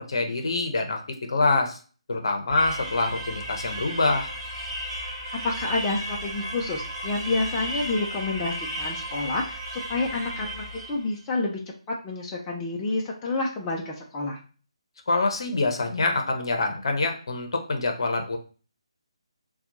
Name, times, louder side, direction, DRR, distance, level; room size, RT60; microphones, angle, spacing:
voice 1, 0.1-1.0 1.3-1.8 2.1-4.3 15.1-18.4, left 3 dB, 55° left, 4 dB, 0.8 m, -25 dB
sound 1, 2.5-11.1, equal, 25° right, 1.1 m, -34 dB
voice 2, 5.4-11.6 12.0-14.4, left 3 dB, 15° left, -3 dB, 0.5 m, -29 dB
4.3 x 2.3 x 3.9 m, 0.37 s
figure-of-eight pair, 150°, 3 cm